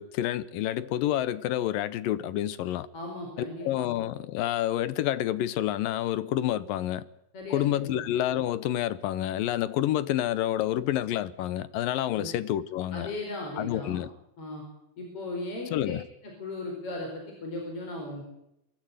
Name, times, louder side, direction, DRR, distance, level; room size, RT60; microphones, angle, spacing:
voice 1, 0.0-2.9 3.6-7.1 7.5-13.1 13.6-14.1 15.7-16.0, left 12 dB, 75° left, 2.6 m, -28 dB
voice 2, 2.9-3.6 7.3-8.0 12.1-12.3 12.9-14.0 14.4-14.6 15.0-15.9 16.2-18.2, left 2 dB, 40° left, 5.6 m, -37 dB
23.5 x 15.0 x 9.4 m
omnidirectional pair, 4.1 m